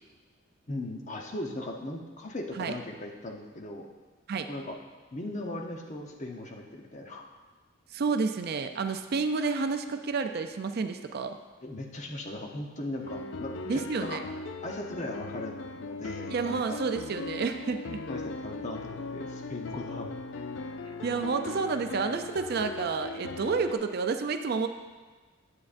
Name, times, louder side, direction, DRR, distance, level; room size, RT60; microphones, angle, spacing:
voice 1, 0.7-3.9 4.5-4.7 5.1-7.2 11.6-14.2 14.6-16.8 18.1-20.1, left 1 dB, 35° left, 1 dB, 0.8 m, -38 dB
voice 2, 7.9-11.4 13.7-14.2 16.3-18.0 21.0-24.7, right 4 dB, 50° right, 7 dB, 0.4 m, -30 dB
sound 1, 13.0-23.8, left 3 dB, 60° left, 0.4 m, -39 dB
9.5 x 8.3 x 2.6 m, 1.3 s
head